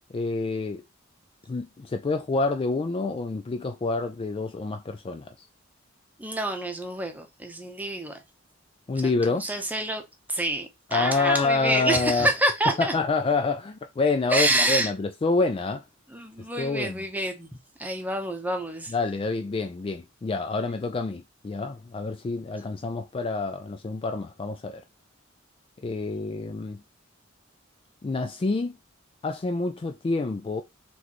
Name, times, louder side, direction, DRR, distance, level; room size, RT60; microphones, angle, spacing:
voice 1, 0.1-0.8 1.5-5.5 8.9-9.5 10.9-12.3 12.8-15.8 16.6-17.0 18.9-24.8 25.8-26.8 28.0-28.8 29.2-30.6, left 3 dB, 25° left, 0.3 m, -27 dB
voice 2, 6.2-8.2 9.0-10.0 10.3-12.9 14.3-14.9 16.1-17.5 17.8-18.9, right 1 dB, 10° right, 0.8 m, -27 dB
4.1 x 3.2 x 3.0 m
head